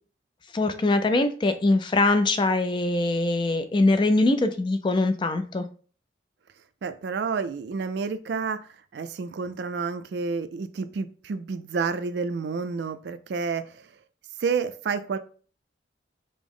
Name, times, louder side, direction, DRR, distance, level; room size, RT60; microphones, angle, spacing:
voice 1, 0.5-5.7, left 2 dB, 25° left, 8 dB, 0.3 m, -22 dB
voice 2, 6.8-13.9 14.4-15.2, right 5 dB, 65° right, 12 dB, 0.3 m, -30 dB
5.0 x 2.0 x 3.6 m, 0.41 s
head